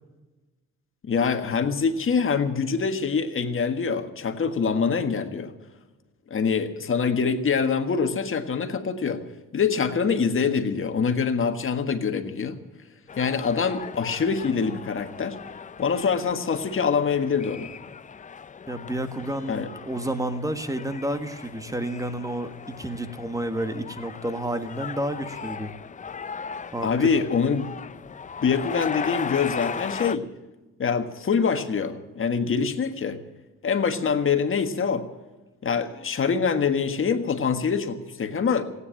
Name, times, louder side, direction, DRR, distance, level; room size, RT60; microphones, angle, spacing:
voice 1, 1.0-5.5 6.3-9.2 9.5-12.6 13.2-15.4 15.8-17.7 19.5-19.7 26.8-27.7 28.4-30.2 30.8-33.2 33.6-35.1 35.6-38.6, left 5 dB, 45° left, 7 dB, 1.6 m, -24 dB
sound 1, 13.1-30.2, left 6 dB, 25° left, 0.5 m, -38 dB
voice 2, 18.7-25.7 26.7-27.1, right 1 dB, 10° right, 9 dB, 1.4 m, -30 dB
15.5 x 9.7 x 8.7 m, 1.2 s
cardioid pair, 90°, 30 cm